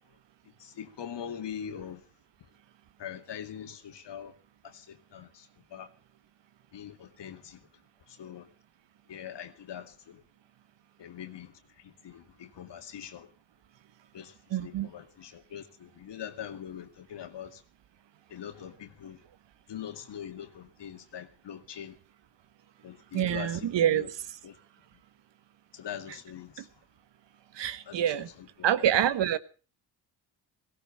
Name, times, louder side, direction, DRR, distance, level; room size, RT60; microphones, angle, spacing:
voice 1, 0.6-2.0 3.0-4.4 4.6-5.9 6.7-7.7 8.1-8.5 9.1-10.2 11.0-13.3 14.1-14.4 14.6-17.6 18.3-19.3 19.7-22.0 22.8-24.1 24.4-24.6 25.7-26.7 27.9-28.9, left 9 dB, 60° left, 2.4 m, -43 dB
voice 2, 14.5-14.9 23.1-24.2 27.5-28.3 28.6-29.4, right 10 dB, 60° right, 1.3 m, -26 dB
17.5 x 17.0 x 4.1 m
supercardioid pair, 75°, 48 cm